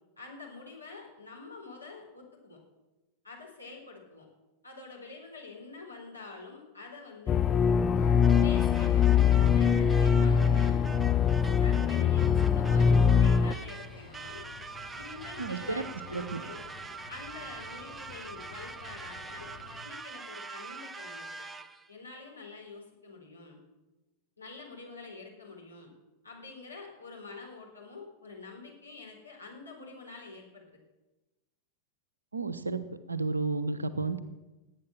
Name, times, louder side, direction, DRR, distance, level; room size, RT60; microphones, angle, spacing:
voice 1, 0.2-2.6 3.2-4.3 4.6-7.5 8.4-10.8 11.6-14.5 14.9-16.6 17.1-19.5 19.8-21.3 21.9-23.6 24.4-25.9 26.2-30.6, left 3 dB, 80° left, -1 dB, 4.3 m, -46 dB
sound 1, 7.3-13.5, left 7 dB, 25° left, 0.5 m, -23 dB
sound 2, 7.9-19.8, left 5 dB, 60° left, 4.1 m, -50 dB
sound 3, 8.2-21.9, right 4 dB, 10° right, 0.8 m, -44 dB
voice 2, 15.4-15.8 16.1-16.4 32.3-32.8 33.1-34.2, right 3 dB, 80° right, 12 dB, 1.0 m, -32 dB
18.5 x 9.1 x 7.2 m, 1.1 s
figure-of-eight pair, 90°, 0 cm